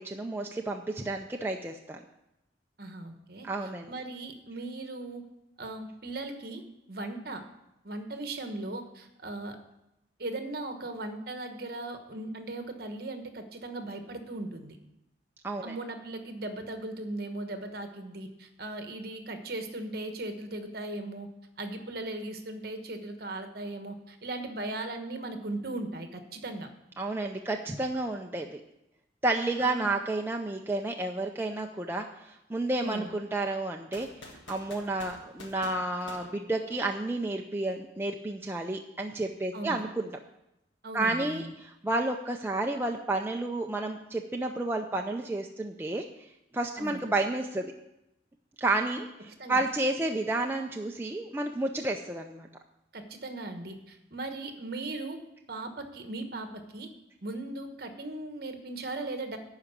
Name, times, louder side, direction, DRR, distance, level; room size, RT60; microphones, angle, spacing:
voice 1, 0.0-2.0 3.4-3.9 15.4-15.7 27.0-28.6 29.2-40.1 40.9-46.0 46.5-47.7 48.6-52.5, right 2 dB, 10° right, 2 dB, 0.4 m, -31 dB
voice 2, 2.8-3.5 3.9-5.2 5.6-6.6 6.9-7.4 7.8-9.6 10.2-14.8 15.6-21.3 21.6-26.7 29.6-29.9 32.8-33.1 39.5-39.8 40.8-41.5 46.8-47.0 49.4-49.6 52.9-55.2 55.5-56.9 57.2-59.4, right 2 dB, 50° right, 6 dB, 1.2 m, -38 dB
sound 1, 33.9-37.1, left 2 dB, 80° left, 1.6 m, -49 dB
11.0 x 4.9 x 8.1 m, 0.88 s
head